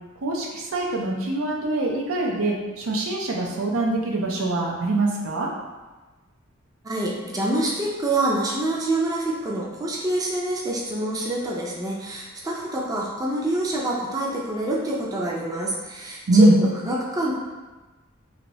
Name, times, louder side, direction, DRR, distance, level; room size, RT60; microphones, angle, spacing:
voice 1, 0.2-5.5 16.3-16.6, right 2 dB, 90° right, -1 dB, 0.6 m, -22 dB
voice 2, 6.8-17.3, right 1 dB, 20° right, -3 dB, 0.4 m, -26 dB
2.8 x 2.6 x 3.0 m, 1.2 s
head